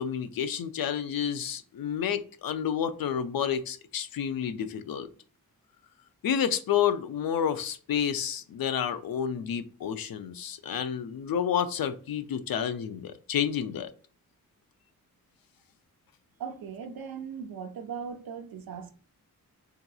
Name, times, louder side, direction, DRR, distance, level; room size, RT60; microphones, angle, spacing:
voice 1, 0.0-5.1 6.2-13.9, left 8 dB, 75° left, 0.5 m, -30 dB
voice 2, 16.4-18.9, right 6 dB, 85° right, 0.5 m, -38 dB
3.7 x 2.8 x 2.2 m
cardioid pair, 75°, 35 cm